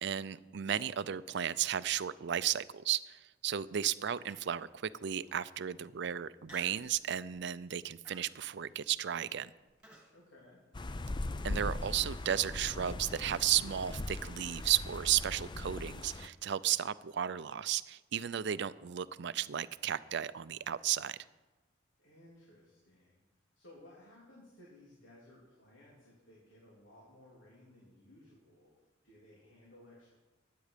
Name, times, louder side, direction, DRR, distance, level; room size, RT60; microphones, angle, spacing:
voice 1, 0.0-9.5 11.4-21.2, right 10 dB, 65° right, 16 dB, 0.5 m, -34 dB
Human voice, 4.3-4.7 5.2-5.3 6.4-6.9 7.3-7.6 8.0-10.1, right 1 dB, 5° right, 2.4 m, -55 dB
voice 2, 10.1-10.6 22.0-23.2 23.5-30.2, left 1 dB, 80° left, -5 dB, 3.5 m, -59 dB
sound 1, 10.7-16.3, left 2 dB, 25° left, 0.5 m, -40 dB
15.5 x 10.5 x 5.1 m, 1.2 s
head